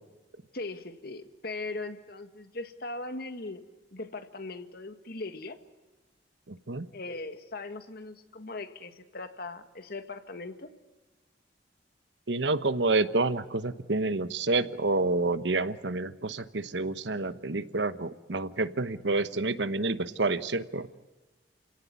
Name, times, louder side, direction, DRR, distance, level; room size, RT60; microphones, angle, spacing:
voice 1, 0.5-3.7 3.9-5.6 6.9-10.7, left 2 dB, 60° left, 9 dB, 1.8 m, -39 dB
voice 2, 6.5-6.8 12.3-20.9, right 3 dB, 80° right, 13 dB, 1.1 m, -28 dB
28.5 x 17.5 x 9.6 m, 1.2 s
head